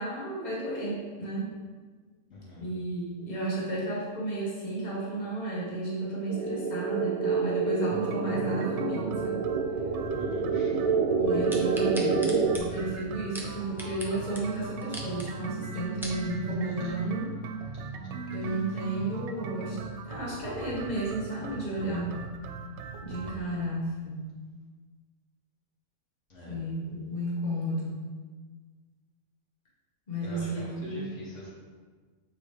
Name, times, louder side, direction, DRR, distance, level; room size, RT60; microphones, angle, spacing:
voice 1, 0.0-1.5 2.6-9.4 11.2-12.2 12.5-17.3 18.3-19.8 20.0-22.2 23.0-24.2 26.5-27.9 30.1-31.2, right 1 dB, 35° left, -8 dB, 1.8 m, -32 dB
voice 2, 2.3-2.7 10.1-10.9 11.7-11.9 14.6-14.9 18.7-18.8 23.2-23.6 26.3-26.6 30.2-31.5, left 1 dB, 75° left, -7 dB, 2.1 m, -45 dB
sound 1, 6.3-12.6, right 5 dB, 40° right, 0.6 m, -28 dB
sound 2, 7.9-23.4, right 5 dB, 70° right, 0.9 m, -40 dB
sound 3, 11.5-14.1 14.3-14.4 14.8-15.3 15.7-16.2 16.8-16.9, right 1 dB, ahead, 0.7 m, -39 dB
7.6 x 4.5 x 3.4 m, 1.5 s
omnidirectional pair, 1.3 m